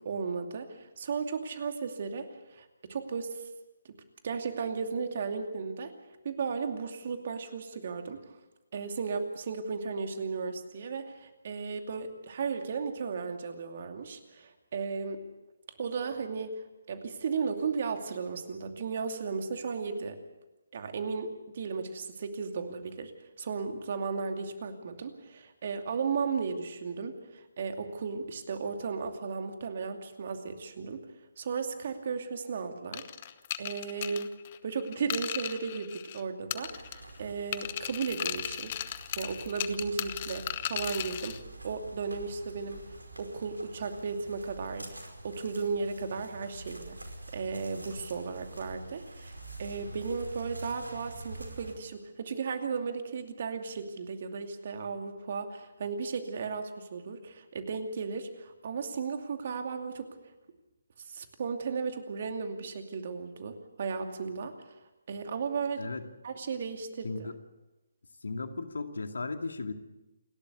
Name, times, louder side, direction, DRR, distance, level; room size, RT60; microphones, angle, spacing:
voice 1, 0.0-3.4 4.2-5.9 6.2-8.2 8.7-15.2 15.8-20.2 20.7-23.1 23.4-31.1 31.4-33.0 33.6-34.3 34.6-38.8 39.2-42.9 43.2-47.0 47.3-60.1 61.1-64.5 65.1-65.8 66.2-67.1, right 5 dB, 50° right, 6 dB, 2.6 m, -35 dB
sound 1, 32.9-36.2 36.5-37.2 37.5-41.4, left 11 dB, 35° left, 1.0 m, -36 dB
sound 2, 36.6-51.7, right 2 dB, 90° right, 4.9 m, -46 dB
voice 2, 67.0-67.4 68.2-69.7, left 3 dB, 70° left, 6 dB, 2.3 m, -36 dB
28.0 x 12.5 x 8.3 m, 1.0 s
figure-of-eight pair, 145°, 0 cm